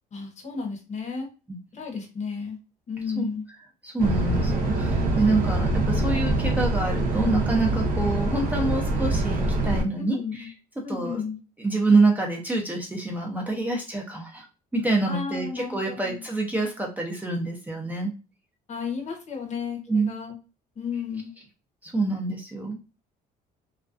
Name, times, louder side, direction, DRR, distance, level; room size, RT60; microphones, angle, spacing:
voice 1, 0.1-1.3 1.7-2.6 2.9-3.4 10.0-10.5 10.8-11.4 15.1-16.2 18.7-20.4 20.8-21.3, left 5 dB, 45° left, 3 dB, 0.8 m, -33 dB
voice 2, 3.8-10.5 10.9-11.2 11.6-14.5 14.7-18.1 19.9-20.1 21.8-22.8, right 3 dB, 10° right, -1 dB, 0.5 m, -26 dB
sound 1, 4.0-9.8, right 2 dB, 55° right, 0.6 m, -24 dB
2.4 x 2.2 x 2.4 m, 0.32 s
cardioid pair, 110°, 17 cm